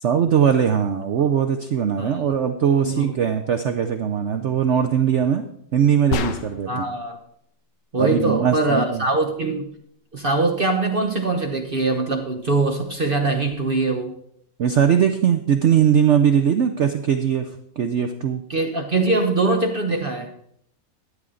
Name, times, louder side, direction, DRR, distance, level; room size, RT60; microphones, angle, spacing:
voice 1, 0.0-5.4 5.7-6.9 8.0-9.0 14.6-17.5 17.8-18.4, right 8 dB, 90° right, 7 dB, 0.6 m, -20 dB
sound 1, 6.1-6.8, left 5 dB, 70° left, 1.4 m, -27 dB
voice 2, 6.7-7.2 7.9-9.7 10.1-14.1 18.5-20.3, right 3 dB, 45° right, 4 dB, 0.7 m, -22 dB
13.0 x 9.3 x 3.8 m, 0.70 s
omnidirectional pair, 2.0 m